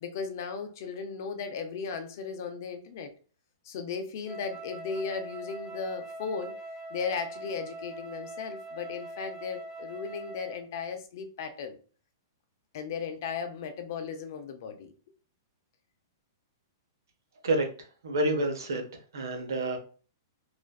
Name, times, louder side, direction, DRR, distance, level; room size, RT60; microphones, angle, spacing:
voice 1, 0.0-3.1 3.6-6.6 6.9-11.8 12.7-14.9, left 5 dB, 55° left, 6 dB, 0.5 m, -36 dB
Wind instrument woodwind instrument, 4.2-10.7, right 1 dB, 20° right, 0.8 m, -42 dB
voice 2, 18.0-18.9 19.1-19.8, right 2 dB, 85° right, 4 dB, 0.7 m, -28 dB
2.4 x 2.2 x 2.3 m, 0.37 s
hypercardioid pair, 140°, 2 cm